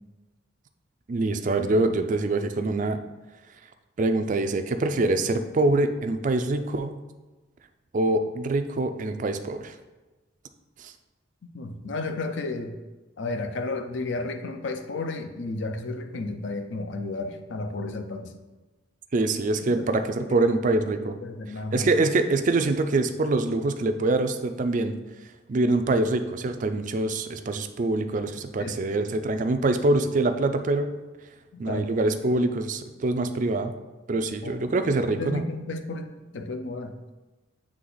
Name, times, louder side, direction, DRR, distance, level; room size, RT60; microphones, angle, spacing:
voice 1, 1.1-3.0 4.0-7.0 7.9-9.7 10.8-10.9 19.1-21.2 21.7-24.9 25.5-30.9 31.6-33.7 34.1-35.4, right 2 dB, 40° right, 8 dB, 0.4 m, -24 dB
voice 2, 11.4-12.8 13.2-18.3 19.7-20.5 21.2-21.9 28.6-28.8 31.5-32.1 34.4-34.6 34.9-37.1, left 3 dB, 65° left, 7 dB, 0.5 m, -33 dB
7.7 x 3.3 x 3.9 m, 1.2 s
head